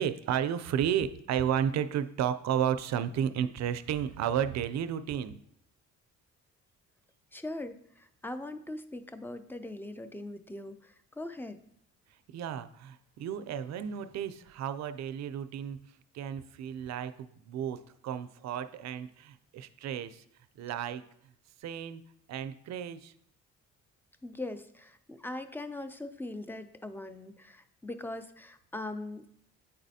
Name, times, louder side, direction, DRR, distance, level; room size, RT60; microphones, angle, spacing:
voice 1, 0.0-5.4 12.3-20.2 20.6-21.0 21.6-22.0 22.3-23.1, right 9 dB, 60° right, 12 dB, 0.4 m, -33 dB
voice 2, 7.3-11.6 24.2-29.3, left 2 dB, 5° left, 10 dB, 0.4 m, -41 dB
8.6 x 4.1 x 2.7 m, 0.70 s
cardioid pair, 90°, 30 cm